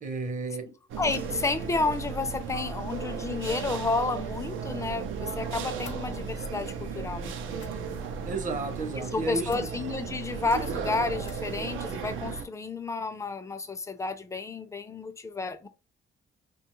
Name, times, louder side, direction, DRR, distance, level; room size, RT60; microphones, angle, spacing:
voice 1, 0.0-0.6 8.3-9.7, right 3 dB, 40° right, 0.7 m, -32 dB
voice 2, 0.6-8.0 9.0-15.7, left 3 dB, 15° left, 0.4 m, -31 dB
sound 1, 0.9-12.4, right 6 dB, 85° right, 0.5 m, -35 dB
sound 2, 5.8-6.0 7.5-7.7 9.5-9.7 11.2-11.5, left 6 dB, 65° left, 0.6 m, -46 dB
2.7 x 2.3 x 2.9 m
cardioid pair, 90°, 20 cm